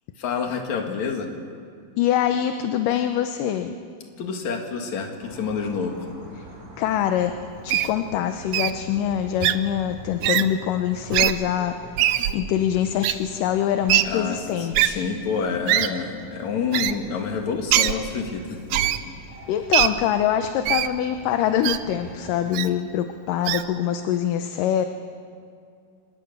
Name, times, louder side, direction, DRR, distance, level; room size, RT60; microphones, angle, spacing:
voice 1, 0.2-1.3 4.2-6.0 14.1-18.8, left 5 dB, 60° left, 3 dB, 3.1 m, -28 dB
voice 2, 2.0-3.8 6.4-6.5 6.8-7.3 7.6-12.1 12.3-15.0 19.5-24.9, left 10 dB, 80° left, 7 dB, 2.4 m, -24 dB
sound 1, 5.2-22.6, right 1 dB, 60° right, 5.5 m, -44 dB
Wild animals, 7.7-7.9 8.5-8.7 9.4-9.5 10.2-10.4 11.1-11.3 12.0-12.3 13.0-13.1 13.9-14.0 14.7-14.9 15.7-15.9 16.7-16.9 17.7-17.9 18.7-19.0 19.7-19.9 20.7-20.9 21.6-21.8 22.5-22.7 23.5-23.6, right 13 dB, 85° right, 1.6 m, -20 dB
26.0 x 19.0 x 6.8 m, 2.3 s
omnidirectional pair, 3.9 m